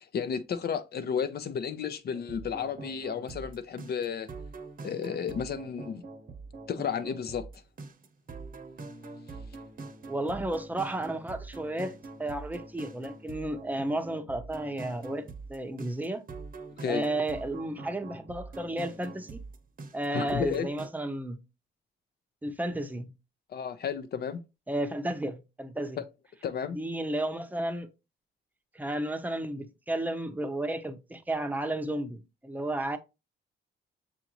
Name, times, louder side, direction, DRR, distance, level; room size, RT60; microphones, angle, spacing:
voice 1, 0.1-4.3 4.8-6.0 6.7-7.5 16.8-17.0 20.1-20.7 23.5-24.4 26.0-26.1 26.4-26.8, left 7 dB, 55° left, 0.6 m, -32 dB
sound 1, 2.1-20.9, right 3 dB, 45° right, 0.8 m, -44 dB
voice 2, 10.1-15.2 15.5-16.2 16.9-19.4 19.9-21.4 22.4-23.1 24.7-26.0 26.7-27.9 28.7-33.0, right 1 dB, 10° right, 0.7 m, -33 dB
6.9 x 2.6 x 2.9 m
cardioid pair, 90°, 20 cm